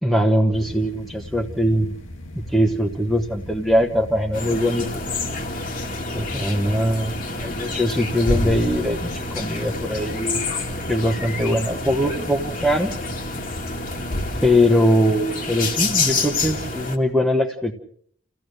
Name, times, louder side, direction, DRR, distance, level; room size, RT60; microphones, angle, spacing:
voice 1, 0.0-1.9 2.3-5.0 6.1-10.5 10.9-12.9 14.4-17.7, equal, ahead, -1 dB, 1.2 m, -21 dB
sound 1, 0.5-14.5, left 1 dB, 75° left, 2.1 m, -38 dB
sound 2, 4.3-17.0, left 3 dB, 40° left, 2.0 m, -28 dB
29.5 x 16.0 x 6.6 m, 0.63 s
head